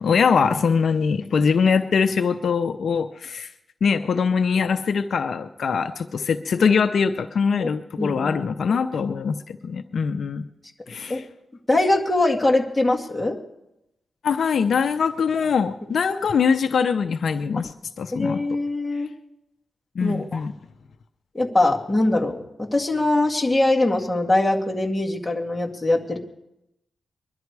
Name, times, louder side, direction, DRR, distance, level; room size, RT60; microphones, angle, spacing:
voice 1, 0.0-3.5 3.8-10.4 10.9-11.2 14.2-17.7 18.0-18.4 20.0-20.5, left 6 dB, 70° left, 9 dB, 0.6 m, -22 dB
voice 2, 8.0-8.4 11.1-11.2 11.7-13.4 18.1-19.1 20.0-20.4 21.3-26.2, left 2 dB, 10° left, -1 dB, 2.1 m, -22 dB
22.0 x 11.5 x 4.7 m, 0.87 s
cardioid pair, 90°, 0 cm